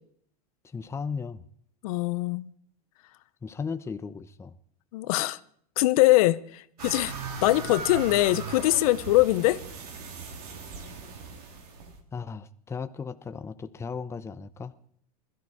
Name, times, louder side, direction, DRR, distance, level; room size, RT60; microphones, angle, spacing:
voice 1, 0.6-1.4 3.4-4.5 12.1-14.7, left 5 dB, 15° left, 0.8 m, -36 dB
voice 2, 1.8-2.5 4.9-5.4 5.8-7.1 7.4-9.6, left 17 dB, 65° left, 0.9 m, -22 dB
sound 1, 6.8-12.0, right 5 dB, 70° right, 3.7 m, -39 dB
21.0 x 13.0 x 4.9 m
hypercardioid pair, 115°, 20 cm